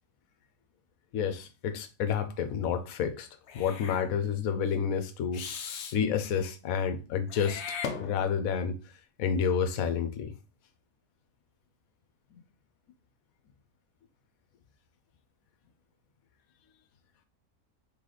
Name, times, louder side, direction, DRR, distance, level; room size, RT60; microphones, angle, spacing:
voice 1, 1.1-3.3 3.5-5.6 5.9-7.6 8.0-8.8 9.2-10.3, left 7 dB, 90° left, 1.0 m, -29 dB
Meow / Hiss, 3.5-4.1 5.3-6.0 7.3-8.5, left 6 dB, 65° left, 0.8 m, -38 dB
3.3 x 3.2 x 3.8 m
omnidirectional pair, 1.4 m